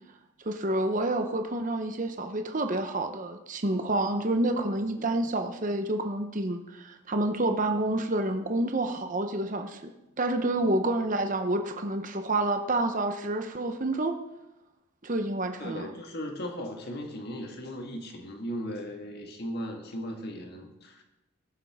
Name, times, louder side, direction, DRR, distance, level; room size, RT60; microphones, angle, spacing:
voice 1, 0.4-9.9 10.2-14.1 15.0-15.9, right 2 dB, 35° right, 6 dB, 0.8 m, -28 dB
voice 2, 15.6-21.0, equal, 50° left, 3 dB, 1.7 m, -37 dB
19.0 x 7.4 x 3.6 m, 0.93 s
head